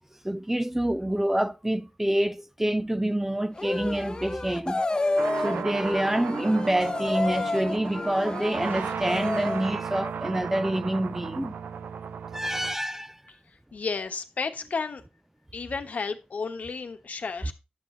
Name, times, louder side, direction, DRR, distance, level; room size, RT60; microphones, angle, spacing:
voice 1, 0.2-4.9 5.4-11.6 12.3-13.2 17.5-17.6, right 1 dB, 10° right, 0.5 m, -27 dB
sound 1, 3.6-9.7, left 2 dB, 30° left, 0.7 m, -30 dB
sound 2, 5.2-12.8, right 6 dB, 80° right, 0.6 m, -35 dB
voice 2, 13.7-15.0 15.5-17.5, left 4 dB, 60° left, 1.1 m, -32 dB
10.5 x 6.3 x 3.8 m
cardioid pair, 60°, 3 cm